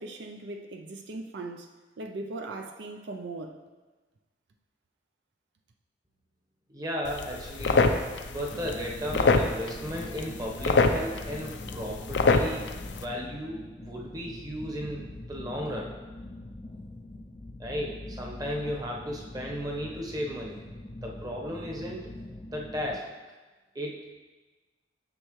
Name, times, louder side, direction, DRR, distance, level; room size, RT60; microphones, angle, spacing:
voice 1, 0.0-1.7 2.0-3.6, right 2 dB, 75° right, 4 dB, 0.5 m, -39 dB
voice 2, 6.7-7.9 8.3-12.6 12.9-15.9 17.6-20.6 21.0-22.1 22.5-23.1 23.7-24.0, equal, 20° right, -1 dB, 1.0 m, -35 dB
sound 1, 7.0-13.0, left 3 dB, 80° left, 0.5 m, -26 dB
sound 2, 8.5-23.0, left 1 dB, 25° left, 0.4 m, -43 dB
9.8 x 6.6 x 3.1 m, 1.3 s
head